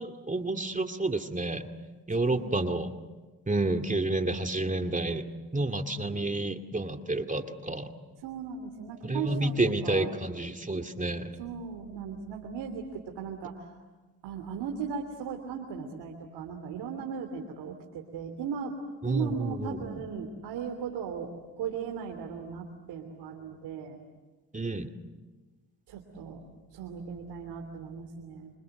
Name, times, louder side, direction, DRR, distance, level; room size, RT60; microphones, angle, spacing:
voice 1, 0.0-1.7 2.1-2.9 3.5-5.2 5.5-7.9 9.0-11.4 19.0-20.0 24.5-24.9, right 2 dB, 20° right, 5 dB, 2.3 m, -30 dB
voice 2, 2.1-2.6 8.2-10.1 11.4-13.7 14.2-18.7 19.0-21.3 21.6-24.0 25.9-26.4 26.7-28.5, right 6 dB, 75° right, 4 dB, 3.1 m, -37 dB
28.0 x 26.5 x 7.9 m, 1.2 s
supercardioid pair, 65°, 40 cm